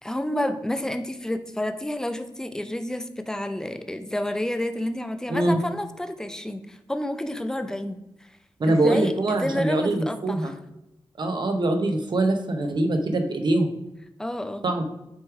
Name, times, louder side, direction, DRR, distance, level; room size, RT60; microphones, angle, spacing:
voice 1, 0.0-8.3 8.6-10.5 14.2-14.6, left 1 dB, 5° left, 8 dB, 0.5 m, -30 dB
voice 2, 8.6-10.5 11.2-13.7 14.6-14.8, right 2 dB, 55° right, 5 dB, 0.9 m, -23 dB
8.2 x 3.2 x 4.6 m, 0.89 s
wide cardioid pair, 120°, 9 cm